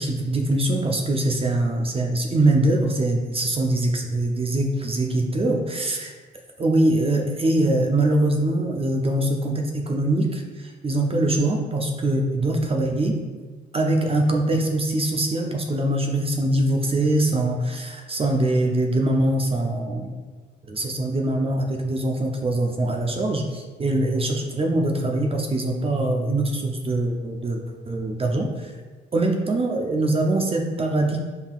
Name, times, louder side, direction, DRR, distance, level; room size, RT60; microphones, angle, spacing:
voice 1, 0.0-6.1 6.6-13.2 13.7-20.2 20.7-27.6 27.8-28.7 29.1-31.2, right 1 dB, 30° right, 2 dB, 0.5 m, -23 dB
5.4 x 3.7 x 2.4 m, 1.4 s
cardioid pair, 90°, 20 cm